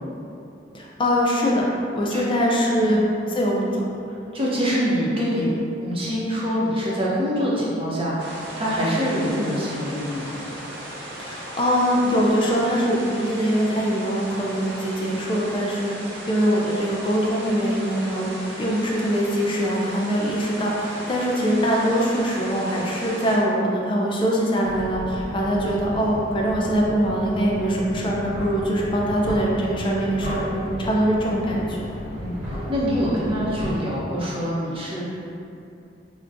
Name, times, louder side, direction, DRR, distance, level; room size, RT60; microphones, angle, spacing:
voice 1, 0.7-1.7 1.9-3.9 11.2-15.9 16.3-18.3 18.6-31.9, equal, 30° left, -3 dB, 0.4 m, -23 dB
voice 2, 4.3-10.3 32.2-32.4 32.7-35.0, equal, 30° right, -6 dB, 0.7 m, -25 dB
sound 1, 8.2-23.4, right 1 dB, 75° right, 0.6 m, -37 dB
sound 2, 24.6-33.8, equal, 50° right, 1.0 m, -33 dB
4.8 x 2.2 x 2.5 m, 2.6 s
head